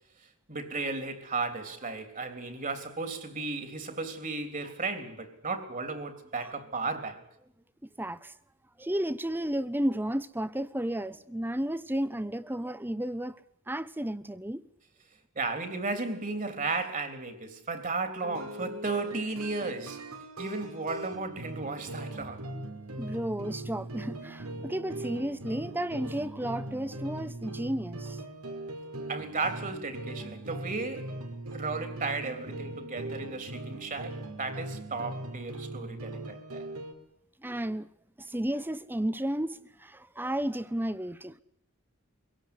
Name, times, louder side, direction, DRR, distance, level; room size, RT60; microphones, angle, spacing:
voice 1, 0.5-7.3 15.4-20.0 20.4-22.5 29.1-31.1 31.5-36.7, right 3 dB, 40° right, 3.4 m, -34 dB
voice 2, 7.8-8.3 8.8-13.4 13.7-14.6 23.0-28.2 37.4-37.9 38.2-41.4, right 1 dB, 10° right, 1.0 m, -33 dB
sound 1, 18.2-36.9, right 2 dB, 85° right, 4.6 m, -40 dB
25.0 x 17.5 x 9.7 m
head